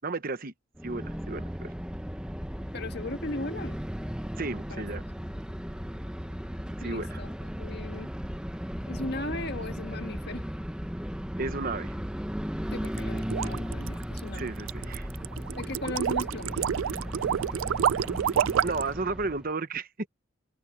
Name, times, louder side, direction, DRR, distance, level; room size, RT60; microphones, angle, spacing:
voice 1, 0.0-0.5 0.8-1.7 4.4-5.0 6.8-7.2 11.4-12.0 14.4-15.1 18.6-20.1, right 3 dB, 45° right, 1.0 m, -33 dB
sound 1, 0.8-19.5, equal, 5° right, 1.1 m, -36 dB
voice 2, 2.7-3.8 4.7-4.9 6.8-7.3 7.6-8.1 8.9-10.4 12.7-14.5 15.6-16.6, left 2 dB, 55° left, 1.7 m, -37 dB
sound 2, 12.8-18.9, right 8 dB, 80° right, 0.3 m, -28 dB
open air
head